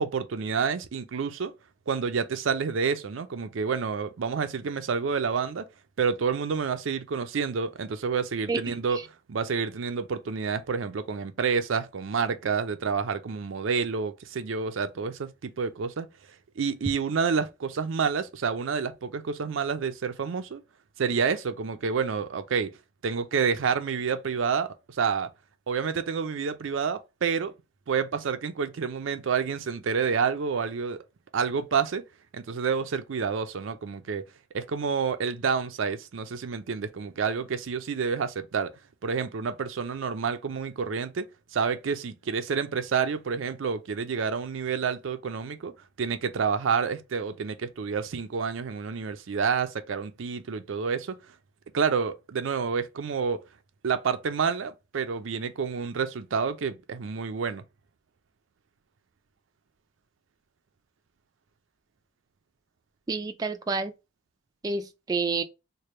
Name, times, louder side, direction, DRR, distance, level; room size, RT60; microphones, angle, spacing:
voice 1, 0.0-1.5 1.9-5.6 6.0-9.0 9.3-16.1 16.6-20.6 21.0-22.7 23.0-25.3 25.7-27.5 27.9-31.0 31.3-32.0 32.3-34.2 34.5-38.7 39.0-41.3 41.5-45.7 46.0-51.2 51.7-53.4 53.8-57.6, right 6 dB, 80° right, 0.5 m, -29 dB
voice 2, 63.1-63.9 64.6-65.4, right 4 dB, 20° right, 0.3 m, -28 dB
3.3 x 2.2 x 4.2 m
head